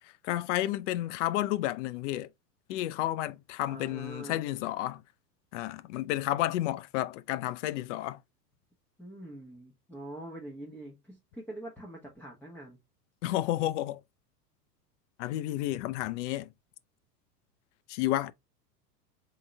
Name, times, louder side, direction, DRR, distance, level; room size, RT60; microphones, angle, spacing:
voice 1, 0.2-2.3 2.7-5.0 5.5-8.2 13.2-14.0 15.2-16.5 17.9-18.3, left 15 dB, 50° left, 0.5 m, -31 dB
voice 2, 3.6-4.4 9.0-12.8, right 1 dB, 5° left, 1.0 m, -44 dB
3.8 x 3.8 x 3.2 m
hypercardioid pair, 100°, 48 cm